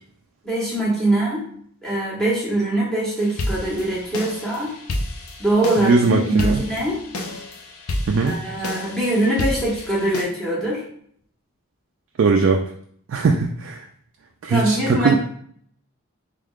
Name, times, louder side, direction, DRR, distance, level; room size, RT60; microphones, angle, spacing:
voice 1, 0.4-1.4 1.8-4.7 5.4-7.0 8.2-10.8 14.5-15.2, right 1 dB, 5° left, -7 dB, 1.1 m, -22 dB
sound 1, 3.2-10.2, left 1 dB, 90° left, 0.6 m, -30 dB
voice 2, 5.8-6.6 8.1-8.3 12.2-12.6 13.1-13.8 14.4-15.2, right 4 dB, 60° right, 2 dB, 0.3 m, -19 dB
3.5 x 3.5 x 2.4 m, 0.62 s
head